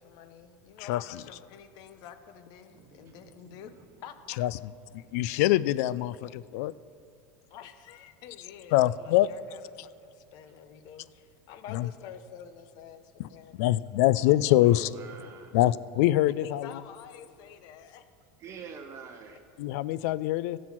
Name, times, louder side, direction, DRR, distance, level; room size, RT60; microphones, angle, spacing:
voice 1, 0.0-3.7 4.0-4.1 7.5-13.0 13.3-13.6 13.8-13.9 16.4-18.0 18.5-18.6, left 9 dB, 50° left, 10 dB, 0.8 m, -48 dB
voice 2, 0.8-1.2 4.4-4.7 5.1-6.7 8.7-9.3 11.7-11.9 13.2-13.3 13.6-14.9 15.5-16.8 19.6-20.6, left 15 dB, 70° left, 19 dB, 0.3 m, -24 dB
voice 3, 2.7-4.0 4.5-5.4 14.5-15.6 18.4-19.4, right 6 dB, 35° right, 5 dB, 0.8 m, -48 dB
16.0 x 6.3 x 6.0 m, 2.4 s
supercardioid pair, 145°, 9 cm